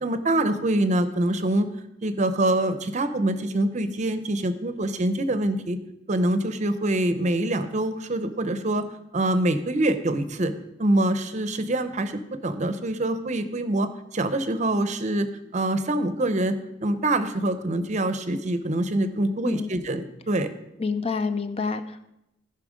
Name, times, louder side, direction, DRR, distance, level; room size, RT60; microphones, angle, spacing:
voice 1, 0.0-1.7 2.0-5.8 6.1-8.8 9.1-10.5 10.8-15.3 15.5-16.6 16.8-20.5, right 1 dB, 40° right, 11 dB, 0.7 m, -25 dB
voice 2, 20.8-22.0, left 4 dB, 35° left, 9 dB, 0.5 m, -27 dB
14.5 x 5.7 x 5.0 m, 0.87 s
head